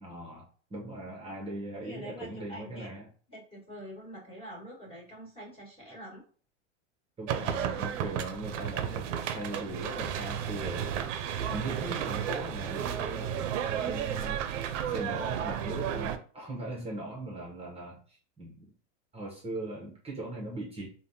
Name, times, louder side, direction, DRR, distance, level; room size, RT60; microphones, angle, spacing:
voice 1, 0.0-3.1 7.2-14.4 14.9-18.7 19.1-20.9, right 1 dB, 15° right, -2 dB, 0.8 m, -40 dB
voice 2, 1.8-2.9 3.3-6.2, equal, 15° left, -4 dB, 1.5 m, -45 dB
sound 1, 7.3-16.2, right 9 dB, 80° right, 0.6 m, -33 dB
3.3 x 2.2 x 2.6 m, 0.43 s
supercardioid pair, 120°, 37 cm